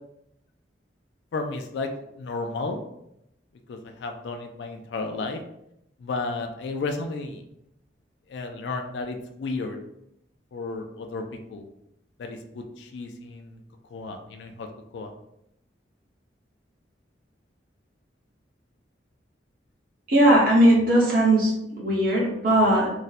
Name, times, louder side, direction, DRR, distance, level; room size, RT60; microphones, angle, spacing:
voice 1, 1.3-1.9 2.2-2.8 3.7-5.4 6.0-7.4 8.3-9.8 10.5-11.7 12.2-13.6 13.9-14.7 14.9-15.1, left 3 dB, 75° left, 4 dB, 0.3 m, -33 dB
voice 2, 20.1-22.9, right 1 dB, 50° right, -4 dB, 0.9 m, -19 dB
2.5 x 2.1 x 4.0 m, 0.81 s
head